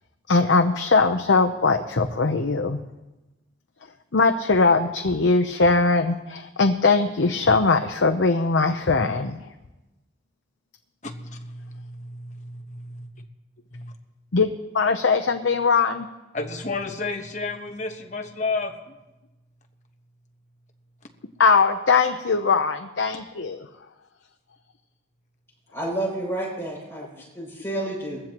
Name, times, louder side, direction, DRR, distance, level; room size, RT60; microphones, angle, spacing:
voice 1, 0.3-2.8 4.1-9.4 14.3-16.1 21.4-23.7, left 4 dB, 85° left, 6 dB, 0.8 m, -20 dB
voice 2, 11.0-13.1 13.7-13.9 16.3-18.7, left 3 dB, 40° left, 4 dB, 1.2 m, -32 dB
voice 3, 25.7-28.2, right 1 dB, 15° left, -3 dB, 6.8 m, -30 dB
21.0 x 15.5 x 3.0 m, 1.0 s
head